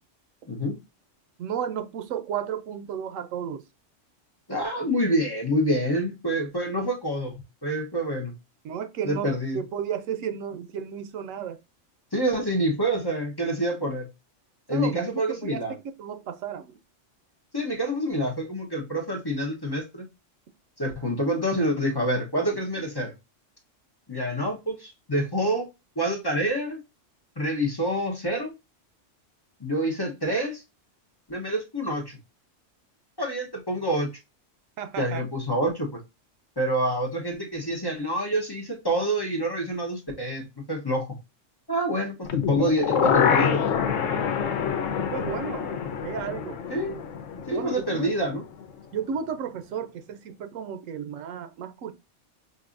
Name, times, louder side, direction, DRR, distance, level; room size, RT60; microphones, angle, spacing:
voice 1, 0.5-0.8 4.5-8.3 9.0-9.6 12.1-14.1 14.7-15.7 17.5-20.0 20.8-23.1 24.1-25.7 26.0-26.8 27.4-28.5 29.6-30.6 31.3-32.2 33.2-34.1 35.0-36.0 36.6-41.1 41.7-43.6 46.7-47.0 47.5-48.4, right 1 dB, 20° left, 0.7 m, -27 dB
voice 2, 1.4-3.6 8.6-11.6 14.7-15.6 16.0-16.8 34.8-35.2 45.0-46.6 47.5-48.1 48.9-51.9, right 8 dB, 85° right, 1.0 m, -33 dB
sound 1, 42.3-48.3 48.6-48.7, left 7 dB, 75° left, 1.0 m, -26 dB
5.4 x 2.6 x 2.4 m
omnidirectional pair, 1.3 m